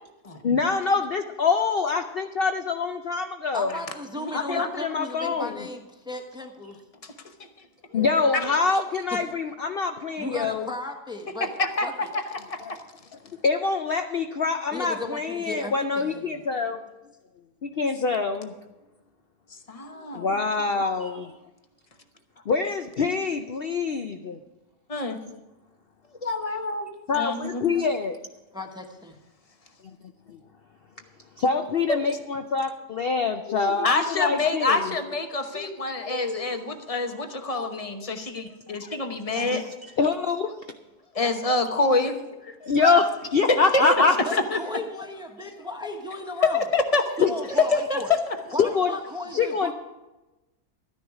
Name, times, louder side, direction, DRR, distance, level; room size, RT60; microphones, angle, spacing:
voice 1, 0.4-3.7 4.3-5.6 7.9-10.7 12.6-12.7 13.4-16.8 17.6-18.5 20.1-21.3 22.5-24.4 27.1-28.2 30.3-30.4 31.4-34.9 39.3-39.6 40.0-40.5 42.6-43.1 43.3-44.1 47.2-47.3 48.6-48.9 49.3-49.7, left 4 dB, 70° left, 6 dB, 0.5 m, -25 dB
voice 2, 3.5-6.8 9.1-9.2 10.2-12.1 14.7-16.4 28.5-29.2 43.8-46.7 47.2-48.1 48.5-49.7, left 1 dB, 5° right, 4 dB, 0.9 m, -35 dB
voice 3, 4.2-4.8 7.0-7.1 7.9-8.0 8.3-8.6 11.6-11.9 12.1-12.8 19.7-20.3 20.8-21.2 24.9-25.2 26.2-26.9 27.1-27.7 31.9-32.1 33.5-39.6 41.1-42.2 42.4-43.1 43.5-43.8 44.3-44.6 46.5-47.3 47.7-48.4, left 3 dB, 30° left, 6 dB, 0.8 m, -27 dB
13.0 x 10.0 x 4.8 m, 1.1 s
omnidirectional pair, 1.7 m